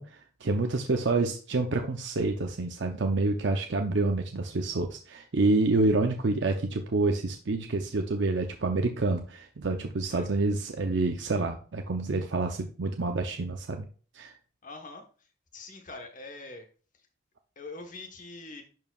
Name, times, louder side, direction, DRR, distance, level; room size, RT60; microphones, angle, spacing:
voice 1, 0.0-13.8 14.1-14.3, right 3 dB, 70° right, 4 dB, 0.6 m, -28 dB
voice 2, 14.6-15.0 15.5-16.6 17.6-18.6, left 3 dB, 45° left, 4 dB, 1.2 m, -43 dB
10.5 x 4.7 x 2.4 m, 0.39 s
head